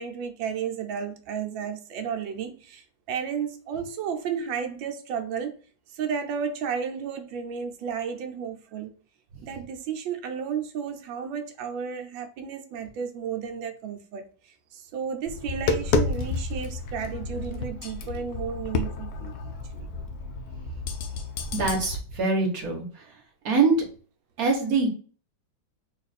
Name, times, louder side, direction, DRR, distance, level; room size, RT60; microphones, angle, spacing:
voice 1, 0.0-5.5 5.9-8.9 9.4-14.2 14.7-19.4 19.7-19.9, right 7 dB, 80° right, 1.4 m, -33 dB
Tap, 15.3-22.0, left 4 dB, 70° left, 0.9 m, -30 dB
voice 2, 21.5-22.8 23.4-23.7 24.4-24.9, right 4 dB, 55° right, 1.5 m, -23 dB
4.0 x 2.5 x 4.1 m
omnidirectional pair, 2.1 m